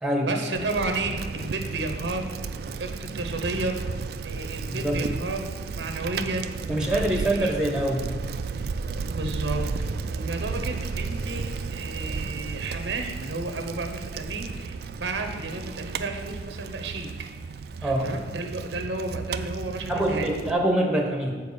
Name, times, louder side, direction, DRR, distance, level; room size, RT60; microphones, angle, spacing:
voice 1, 0.2-2.3 2.8-3.8 4.2-6.6 6.9-7.5 9.1-17.1 17.8-20.3, right 2 dB, 85° right, 5 dB, 0.9 m, -32 dB
Bicycle, 0.5-20.5, right 4 dB, 60° right, 0.3 m, -33 dB
voice 2, 4.7-5.0 6.7-8.1 17.8-18.1 19.9-21.3, right 1 dB, 5° right, 0 dB, 0.8 m, -24 dB
7.0 x 4.5 x 6.7 m, 1.5 s
head